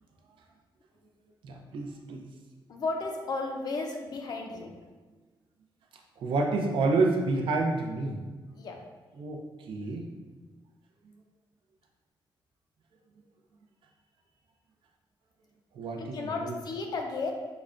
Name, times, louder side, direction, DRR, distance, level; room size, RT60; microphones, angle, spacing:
voice 1, 1.5-2.2 6.2-8.2 9.2-9.4 9.7-10.0 15.8-16.5, right 3 dB, 80° right, 2 dB, 0.5 m, -28 dB
voice 2, 2.7-4.7 8.5-8.8 16.0-17.3, left 3 dB, 50° left, 2 dB, 0.4 m, -34 dB
4.8 x 2.1 x 2.4 m, 1.3 s
wide cardioid pair, 150°, 9 cm